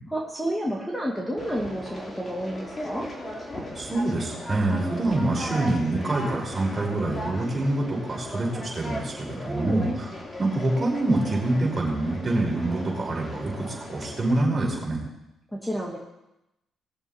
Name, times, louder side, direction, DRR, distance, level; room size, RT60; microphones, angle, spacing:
voice 1, 0.1-3.1 9.5-9.9 15.5-16.0, equal, 5° left, -1 dB, 2.0 m, -30 dB
Conversation, 1.4-14.4, left 1 dB, 25° left, 2.9 m, -37 dB
voice 2, 3.7-9.9 10.4-15.0, right 2 dB, 30° right, -2 dB, 5.2 m, -26 dB
20.5 x 7.2 x 4.3 m, 0.91 s
cardioid pair, 90°, 0 cm